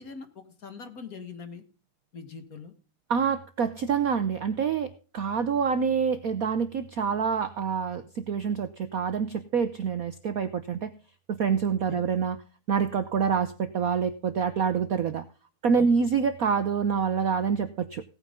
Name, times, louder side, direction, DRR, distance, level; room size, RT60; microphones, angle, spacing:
voice 1, 0.0-1.6 2.1-2.7 11.9-12.0 15.8-15.9, left 5 dB, 45° left, 9 dB, 1.9 m, -42 dB
voice 2, 3.1-10.9 11.3-12.4 12.7-15.2 15.6-18.0, right 6 dB, 65° right, 11 dB, 0.9 m, -26 dB
17.0 x 9.2 x 3.6 m, 0.36 s
omnidirectional pair, 2.4 m